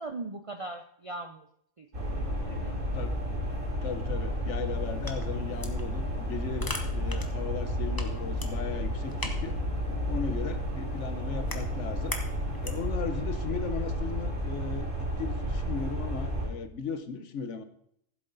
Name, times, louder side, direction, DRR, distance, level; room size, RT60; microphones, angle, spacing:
voice 1, 0.0-1.5 1.8-2.9, right 2 dB, 45° right, 6 dB, 0.4 m, -40 dB
sound 1, 1.9-16.5, equal, 75° right, 3.6 m, -32 dB
voice 2, 3.8-9.6 10.1-12.2 12.6-17.6, left 6 dB, 65° left, 11 dB, 1.1 m, -37 dB
sound 2, 4.7-13.0, left 2 dB, 20° left, 0.9 m, -43 dB
14.0 x 7.8 x 3.9 m, 0.72 s
omnidirectional pair, 1.3 m